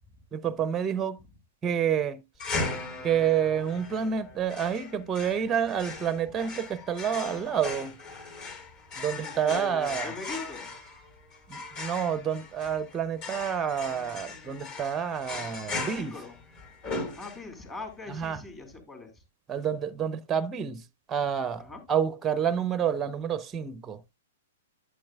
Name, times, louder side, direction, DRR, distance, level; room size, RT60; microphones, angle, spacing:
voice 1, 0.3-1.2 1.6-2.2 3.0-8.0 9.0-10.1 11.5-16.1 18.1-18.4 19.5-24.0, right 8 dB, 15° right, 0.6 m, -29 dB
sound 1, 2.4-17.7, left 3 dB, 40° left, 3.4 m, -38 dB
voice 2, 9.2-10.7 16.0-16.4 17.2-19.1 21.6-21.8, left 3 dB, 20° left, 3.0 m, -41 dB
11.5 x 7.7 x 2.3 m
figure-of-eight pair, 110°, 0 cm